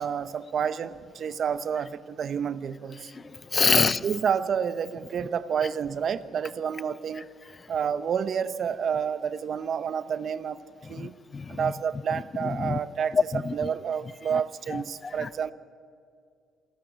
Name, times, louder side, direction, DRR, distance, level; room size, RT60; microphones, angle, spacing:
voice 1, 0.0-3.1 3.8-7.2 7.7-10.6 10.9-11.2 11.5-13.2 13.5-15.5, right 7 dB, 60° right, 15 dB, 0.8 m, -29 dB
voice 2, 3.2-4.0 11.0-11.7 12.1-12.8 13.1-13.7 14.3-14.4 14.7-15.3, left 4 dB, 35° left, 18 dB, 0.5 m, -27 dB
27.0 x 12.0 x 8.2 m, 2.3 s
cardioid pair, 90°, 0 cm